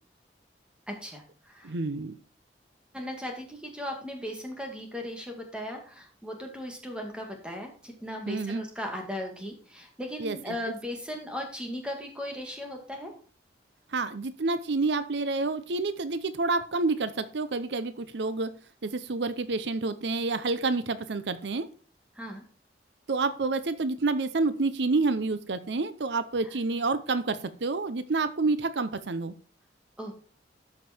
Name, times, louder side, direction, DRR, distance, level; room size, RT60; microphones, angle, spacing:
voice 1, 0.9-1.7 2.9-13.1 22.2-22.4 30.0-30.2, equal, 5° right, 2 dB, 2.1 m, -37 dB
voice 2, 1.6-2.1 8.3-8.6 10.2-10.5 13.9-18.5 18.8-21.7 23.1-29.3, right 3 dB, 75° right, 12 dB, 0.7 m, -28 dB
13.0 x 5.3 x 4.4 m, 0.40 s
head